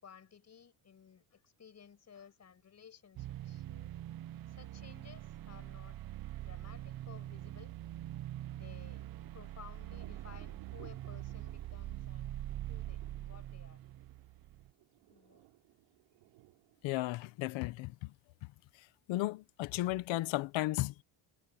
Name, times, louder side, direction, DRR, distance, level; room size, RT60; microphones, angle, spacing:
voice 1, 0.0-3.9 4.5-6.0 6.4-7.7 8.5-9.0 9.3-12.4 12.7-13.8 15.1-15.5, left 7 dB, 35° left, 6.0 m, -57 dB
sound 1, 3.2-14.7, right 13 dB, 50° right, 1.0 m, -44 dB
Thunder, 8.8-17.8, right 20 dB, 85° right, 5.6 m, -63 dB
voice 2, 16.8-18.1 18.4-21.0, left 18 dB, 75° left, 1.2 m, -35 dB
cardioid pair, 125°, 47 cm